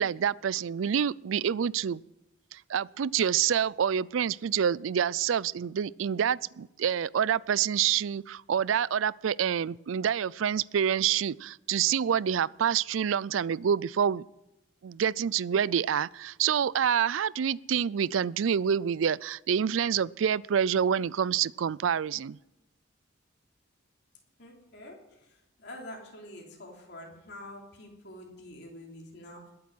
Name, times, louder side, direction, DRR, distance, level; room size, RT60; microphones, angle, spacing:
voice 1, 0.0-2.0 2.5-14.2 14.8-22.4, right 8 dB, 85° right, 22 dB, 0.4 m, -27 dB
voice 2, 24.4-25.1 25.6-29.5, left 1 dB, 60° left, -1 dB, 3.3 m, -46 dB
20.5 x 8.6 x 6.2 m, 0.96 s
head